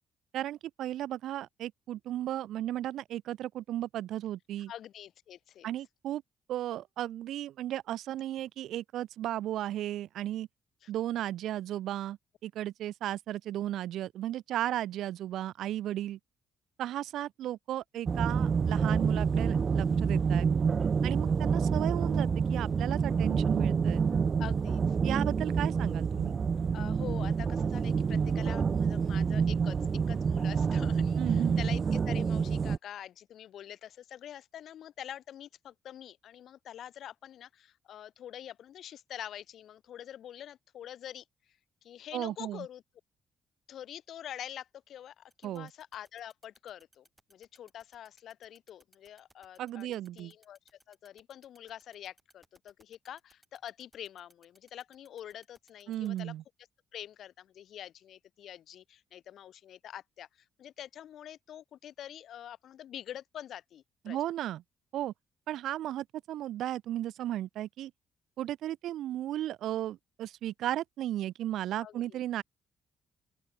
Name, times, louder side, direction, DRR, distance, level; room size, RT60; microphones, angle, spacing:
voice 1, 0.3-4.7 5.6-6.2 6.5-10.5 10.9-16.2 16.8-20.5 21.0-24.0 25.0-26.4 31.2-31.6 42.1-42.6 45.4-45.7 49.6-50.3 55.9-56.4 64.1-64.6 64.9-65.1 65.5-67.9 68.4-72.4, right 13 dB, 80° right, 0.9 m, -35 dB
voice 2, 4.7-5.7 10.8-10.9 24.4-25.0 26.7-29.8 30.1-41.6 41.8-42.8 43.7-50.6 50.9-56.3 56.9-64.3 71.8-72.2, left 10 dB, 70° left, 1.0 m, -46 dB
sound 1, 18.1-32.8, right 6 dB, 45° right, 0.4 m, -28 dB
sound 2, 45.3-56.2, right 1 dB, 10° right, 3.7 m, -64 dB
open air
cardioid pair, 90°, 0 cm